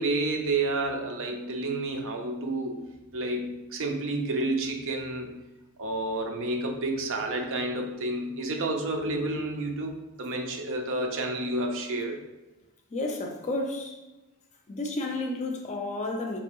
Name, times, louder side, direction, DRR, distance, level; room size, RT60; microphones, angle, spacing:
voice 1, 0.0-2.9 3.1-5.4 5.8-12.2, right 2 dB, 60° right, 3 dB, 0.6 m, -30 dB
voice 2, 12.9-14.0 14.7-16.4, left 2 dB, 30° left, 3 dB, 0.5 m, -31 dB
4.3 x 2.9 x 3.0 m, 1.0 s
head